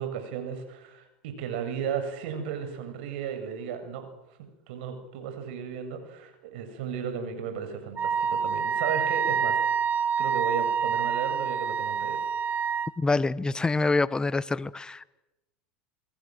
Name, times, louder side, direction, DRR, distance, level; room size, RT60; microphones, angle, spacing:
voice 1, 0.0-4.1 4.7-9.6 10.2-12.2, right 7 dB, 70° right, 7.6 m, -34 dB
Wind instrument woodwind instrument, 8.0-12.9, right 6 dB, 30° right, 1.1 m, -27 dB
voice 2, 13.0-15.0, left 3 dB, 15° left, 1.1 m, -26 dB
28.0 x 22.5 x 7.9 m
hypercardioid pair, 100°, 6 cm